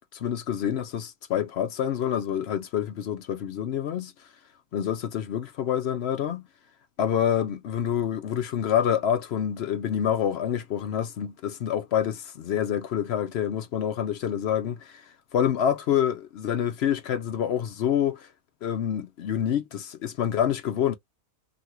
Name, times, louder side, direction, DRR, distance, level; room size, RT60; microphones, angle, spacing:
voice 1, 0.1-4.1 4.7-6.4 7.0-15.0 15.3-18.3 18.6-20.9, left 9 dB, 65° left, 0.6 m, -27 dB
3.0 x 2.5 x 2.9 m
omnidirectional pair, 1.5 m